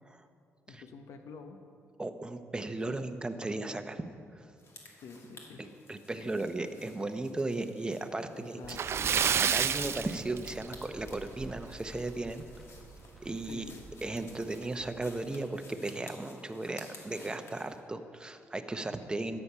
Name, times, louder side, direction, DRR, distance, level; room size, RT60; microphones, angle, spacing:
voice 1, 0.7-1.6 2.9-3.1 5.0-5.7 6.1-6.4 8.3-9.0 13.5-13.8, left 5 dB, 75° left, 6 dB, 0.9 m, -48 dB
voice 2, 2.0-4.0 4.4-4.5 5.6-8.8 9.4-12.4 13.2-13.6 14.0-19.4, right 2 dB, 15° right, 8 dB, 0.8 m, -36 dB
sound 1, 4.6-17.8, left 3 dB, 55° left, 2.3 m, -54 dB
Splash splatter, 8.6-11.0 11.3-11.5 11.9-12.0 13.5-13.6 13.9-14.0 14.6-14.9, right 8 dB, 55° right, 0.5 m, -29 dB
sound 2, 8.7-14.3, right 1 dB, ahead, 1.4 m, -51 dB
12.5 x 8.9 x 5.6 m, 2.4 s
cardioid pair, 95°, 5 cm